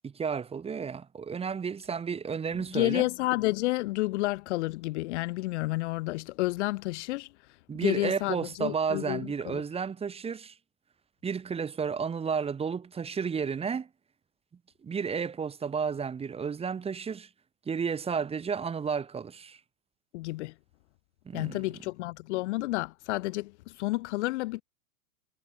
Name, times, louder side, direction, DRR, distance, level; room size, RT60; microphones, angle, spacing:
voice 1, 0.0-3.1 7.7-10.5 11.2-13.9 14.8-17.3 17.7-19.6 21.3-21.6, right 6 dB, 15° right, 1.6 m, -32 dB
voice 2, 2.7-7.3 7.8-9.6 20.1-20.5 21.3-24.6, left 20 dB, 50° left, 1.1 m, -30 dB
hypercardioid pair, 125°, 45 cm